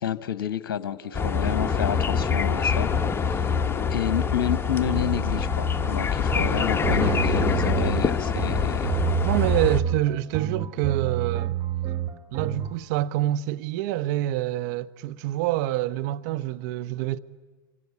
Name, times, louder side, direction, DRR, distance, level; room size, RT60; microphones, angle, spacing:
voice 1, 0.0-2.9 3.2-3.5 3.9-9.0, left 10 dB, 65° left, 0.9 m, -30 dB
sound 1, 0.7-3.5, right 5 dB, 75° right, 3.6 m, -50 dB
sound 2, 1.1-9.8, left 6 dB, 20° left, 1.2 m, -25 dB
sound 3, 4.8-12.7, right 9 dB, 30° right, 2.0 m, -29 dB
voice 2, 9.2-11.5 12.3-17.2, right 14 dB, 55° right, 0.9 m, -27 dB
26.5 x 25.0 x 8.3 m
figure-of-eight pair, 85°, 12 cm